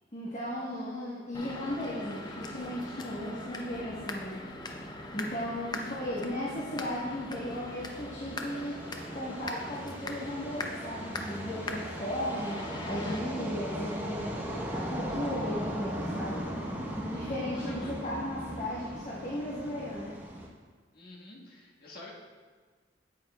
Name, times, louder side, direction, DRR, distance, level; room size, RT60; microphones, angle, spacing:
voice 1, 0.1-4.4 5.1-8.8 9.1-14.3 14.7-16.5 17.1-20.2, left 1 dB, 40° left, -6 dB, 1.2 m, -36 dB
sound 1, 1.3-13.2, left 2 dB, 25° left, 0.5 m, -41 dB
sound 2, 1.4-20.5, equal, 10° right, 0.9 m, -39 dB
voice 2, 17.5-17.9 20.9-22.1, left 2 dB, 55° left, -4 dB, 1.5 m, -47 dB
8.9 x 8.3 x 2.3 m, 1.5 s
head